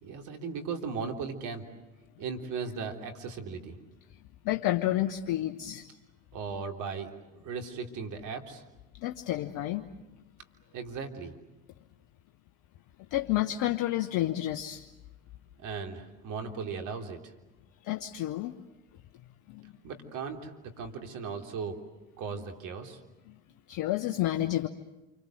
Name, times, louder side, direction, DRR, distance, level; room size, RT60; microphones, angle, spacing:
voice 1, 0.0-1.7 2.2-3.8 6.3-7.2 7.4-8.6 10.7-11.3 15.6-17.2 19.8-21.8 22.2-23.0, right 5 dB, 65° right, 4 dB, 3.5 m, -37 dB
voice 2, 4.4-5.9 9.0-9.9 13.1-14.8 17.8-18.5 19.5-19.7 23.7-24.7, left 14 dB, 70° left, 6 dB, 1.2 m, -30 dB
28.5 x 25.0 x 7.9 m, 1.0 s
hypercardioid pair, 60°, 33 cm